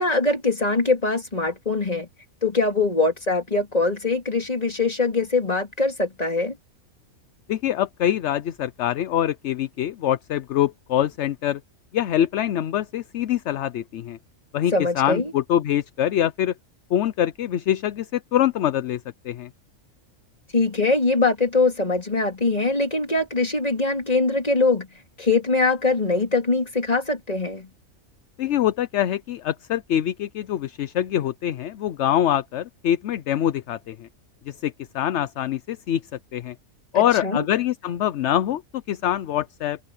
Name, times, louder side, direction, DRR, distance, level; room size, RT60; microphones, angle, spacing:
voice 1, 0.0-2.1 2.4-6.6 14.7-15.3 20.5-24.9 25.2-27.7 36.9-37.4, left 3 dB, 30° left, 3.1 m, -22 dB
voice 2, 7.5-11.6 11.9-14.2 14.5-16.5 16.9-19.0 19.2-19.5 28.4-34.1 34.5-36.0 36.3-36.5 36.9-39.8, left 11 dB, 65° left, 0.9 m, -24 dB
omnidirectional pair, 1.4 m